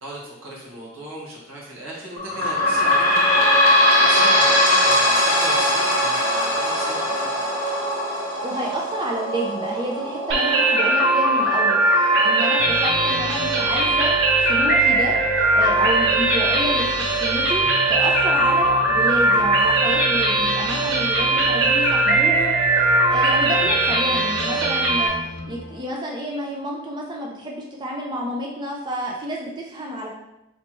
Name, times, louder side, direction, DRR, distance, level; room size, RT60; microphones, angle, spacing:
voice 1, 0.0-3.4 3.9-7.4, right 1 dB, 85° right, -4 dB, 1.4 m, -36 dB
sound 1, 2.2-15.3 15.9-16.0 16.3-16.4 17.2-17.3, left 1 dB, 15° left, 1.1 m, -21 dB
voice 2, 8.4-14.1 14.4-15.2 15.5-22.6 23.0-25.2 25.5-30.1, right 1 dB, 20° right, -1 dB, 0.4 m, -29 dB
sound 2, 10.3-25.1, right 2 dB, 60° right, 0.8 m, -19 dB
sound 3, 12.6-27.3, left 2 dB, 55° left, 0.4 m, -36 dB
4.2 x 3.2 x 3.0 m, 0.92 s
head